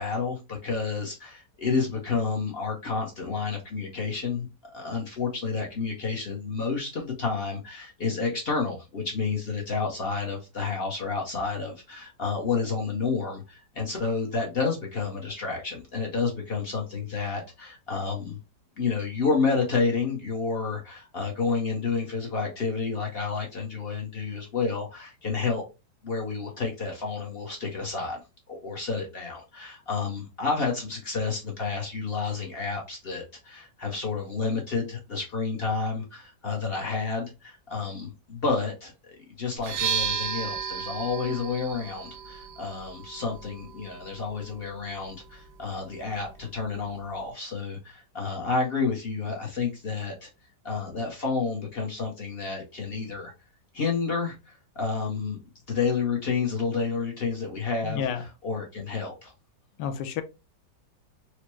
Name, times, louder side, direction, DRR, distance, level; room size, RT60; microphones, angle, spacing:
voice 1, 0.0-4.5 4.7-18.4 18.8-25.7 26.0-28.2 28.5-38.9 39.4-50.3 50.6-53.3 53.7-55.4 55.7-58.0 58.4-59.3, left 4 dB, 50° left, 0.7 m, -30 dB
sound 1, 39.6-47.3, right 7 dB, 90° right, 1.4 m, -35 dB
voice 2, 57.8-58.3 59.8-60.2, left 8 dB, 80° left, 1.2 m, -30 dB
4.5 x 2.0 x 3.0 m
omnidirectional pair, 1.9 m